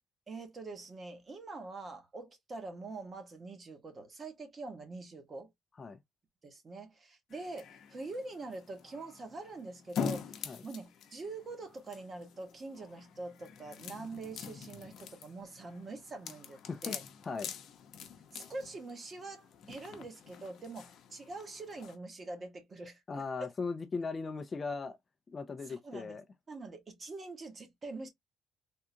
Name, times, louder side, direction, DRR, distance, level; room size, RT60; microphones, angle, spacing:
voice 1, 0.3-5.5 6.4-17.0 18.3-23.0 23.4-23.5 25.7-26.2 26.5-28.1, right 3 dB, 30° right, 1.0 m, -44 dB
sound 1, 7.3-22.0, left 7 dB, 60° left, 0.7 m, -45 dB
voice 2, 23.1-25.0 25.3-26.2, left 4 dB, 25° left, 0.4 m, -38 dB
3.6 x 2.3 x 2.7 m
cardioid pair, 135°, 0 cm